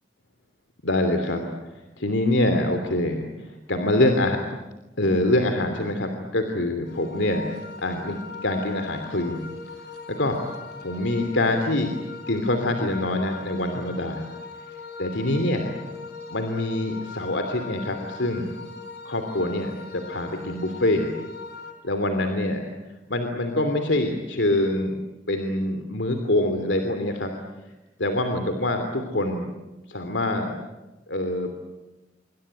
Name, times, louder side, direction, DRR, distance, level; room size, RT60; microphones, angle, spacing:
voice 1, 0.8-4.4 5.0-7.5 7.8-9.4 10.1-11.9 12.3-14.3 15.0-15.7 16.3-18.5 19.0-21.1 21.8-22.6 23.1-25.0 25.3-27.3 28.0-29.5 29.9-30.5 31.1-31.5, left 1 dB, 80° left, 6 dB, 2.9 m, -25 dB
sound 1, 6.9-21.7, left 4 dB, 60° left, 4.4 m, -40 dB
26.5 x 24.5 x 9.0 m, 1.1 s
head